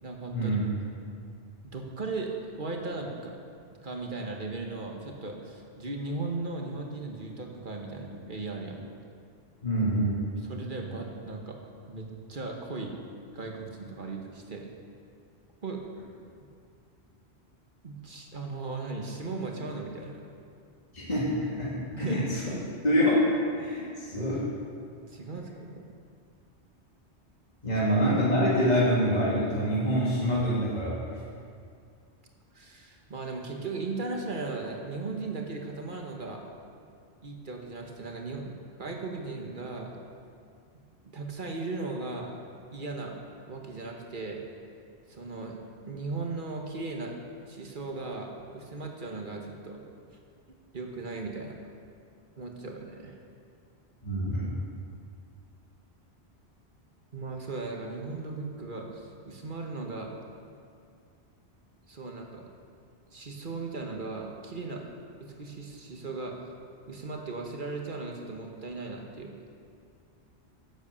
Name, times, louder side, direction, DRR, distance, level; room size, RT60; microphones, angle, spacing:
voice 1, 0.0-0.5 1.7-3.3 3.8-8.8 10.4-11.6 11.9-12.9 13.3-14.7 15.6-15.8 17.8-20.2 21.9-22.6 25.1-25.8 32.5-36.4 37.2-38.5 38.8-39.9 41.0-42.3 42.7-43.1 43.5-44.4 45.1-45.6 45.9-47.1 47.4-49.8 50.7-51.5 52.4-53.2 57.1-60.1 61.9-62.4 63.1-64.8 65.2-66.4 66.9-69.3, right 3 dB, 45° right, 1 dB, 1.4 m, -37 dB
voice 2, 9.6-10.3 20.9-22.4 22.8-23.2 23.6-24.4 27.6-30.9 54.0-54.6, equal, 40° left, -7 dB, 2.5 m, -26 dB
10.5 x 8.1 x 6.9 m, 2.3 s
omnidirectional pair, 1.2 m